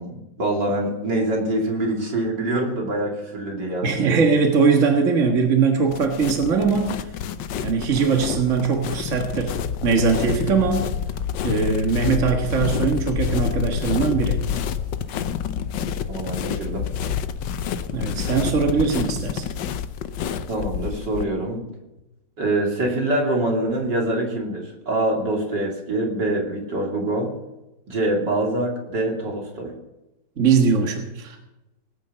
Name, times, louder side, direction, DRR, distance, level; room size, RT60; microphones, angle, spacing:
voice 1, 0.0-4.2 16.1-16.8 20.5-21.6 22.4-27.3 27.9-29.7, right 1 dB, 70° right, 0 dB, 3.7 m, -25 dB
voice 2, 3.8-7.0 7.6-9.5 9.8-10.9 11.4-14.4 17.9-19.4 30.4-31.4, right 5 dB, 45° right, 3 dB, 1.9 m, -21 dB
sound 1, 5.9-21.2, left 8 dB, 85° left, 1.5 m, -28 dB
19.5 x 9.3 x 6.9 m, 0.96 s
omnidirectional pair, 1.9 m